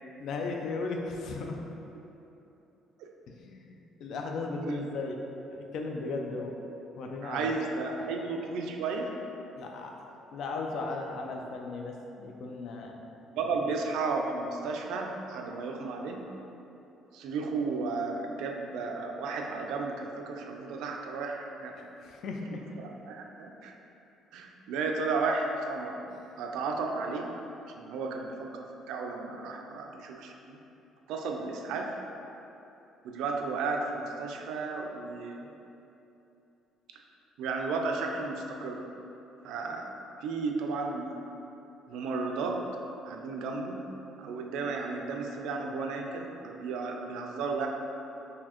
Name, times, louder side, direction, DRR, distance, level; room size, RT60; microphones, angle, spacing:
voice 1, 0.2-1.6 3.3-6.6 7.0-7.5 8.0-8.1 9.6-9.9 10.3-13.0 13.7-13.8 21.8-22.7, left 3 dB, 55° left, 1 dB, 0.3 m, -36 dB
voice 2, 7.2-9.2 13.4-16.3 17.1-21.8 23.0-23.7 24.3-26.0 26.4-27.4 27.8-30.6 31.1-32.0 33.0-35.5 37.4-38.9 39.4-39.9 40.2-41.2 41.9-42.7 43.0-43.9 44.2-47.7, right 4 dB, 75° right, 2 dB, 0.3 m, -33 dB
3.9 x 2.6 x 2.9 m, 3.0 s
cardioid pair, 165°, 0 cm